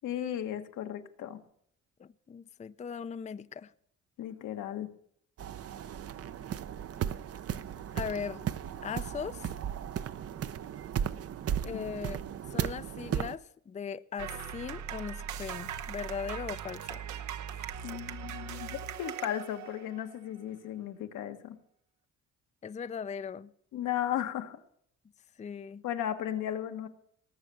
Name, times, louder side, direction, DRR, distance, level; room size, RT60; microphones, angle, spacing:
voice 1, 0.0-1.4 4.2-4.9 11.7-11.8 17.8-21.6 23.7-24.6 25.8-26.9, left 11 dB, 85° left, 1.4 m, -35 dB
voice 2, 2.0-3.7 7.9-8.4 8.8-9.5 11.6-12.2 12.5-17.0 22.6-23.5 25.4-25.8, left 6 dB, 25° left, 0.5 m, -39 dB
sound 1, 5.4-13.3, right 9 dB, 50° right, 0.7 m, -35 dB
sound 2, 14.2-20.1, right 8 dB, 75° right, 1.0 m, -40 dB
18.5 x 7.4 x 6.9 m
cardioid pair, 90°, 30 cm